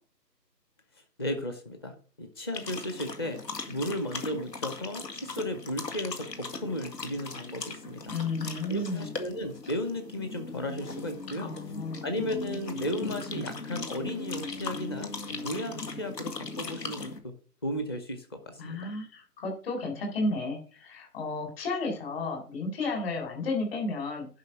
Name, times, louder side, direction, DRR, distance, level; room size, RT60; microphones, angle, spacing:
voice 1, 1.2-3.4 3.7-8.1 8.7-11.5 12.0-17.3 17.6-18.9, left 1 dB, 15° left, 7 dB, 0.8 m, -35 dB
sound 1, 2.5-17.2, left 3 dB, 75° left, 2.2 m, -39 dB
voice 2, 8.1-9.2 11.4-12.1 18.6-24.3, left 2 dB, 35° left, 3 dB, 4.2 m, -32 dB
10.5 x 5.7 x 6.0 m, 0.40 s
figure-of-eight pair, 150°, 49 cm